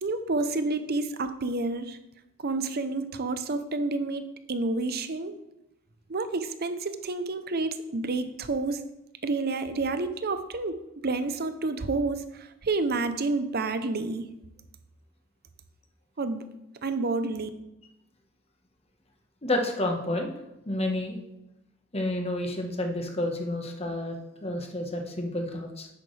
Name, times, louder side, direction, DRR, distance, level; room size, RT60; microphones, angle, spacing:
voice 1, 0.0-2.0 2.4-5.4 6.1-8.8 9.2-14.3 16.2-16.5 16.8-17.5, right 3 dB, 45° right, 10 dB, 0.7 m, -29 dB
voice 2, 19.4-20.3 20.6-21.2 21.9-24.2 24.4-25.9, left 1 dB, 30° left, 3 dB, 1.3 m, -30 dB
10.0 x 8.4 x 3.3 m, 0.90 s
head